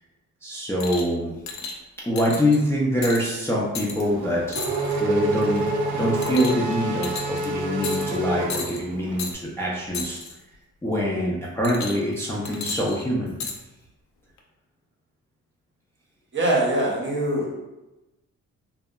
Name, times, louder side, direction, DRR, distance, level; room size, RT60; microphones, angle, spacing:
voice 1, 0.4-1.6 2.0-4.7 5.0-10.2 10.8-13.3, equal, 10° left, -6 dB, 0.4 m, -25 dB
sound 1, 0.8-1.1 1.5-1.8 2.2-2.6 3.0-3.3 3.8-4.0 4.5-5.0 5.4-5.7 6.2-6.7 7.0-7.5 7.8-8.2 8.5-8.8 9.2-9.3 9.9-10.3 11.6-12.1 12.5-13.6 14.4-14.5, left 5 dB, 65° left, 0.5 m, -33 dB
Race car auto racing / Accelerating revving vroom, 4.0-9.2, right 2 dB, 80° right, 0.5 m, -27 dB
voice 2, 16.3-17.6, right 1 dB, 40° right, -3 dB, 0.7 m, -23 dB
2.7 x 2.1 x 2.2 m, 1.0 s
cardioid pair, 90°, 30 cm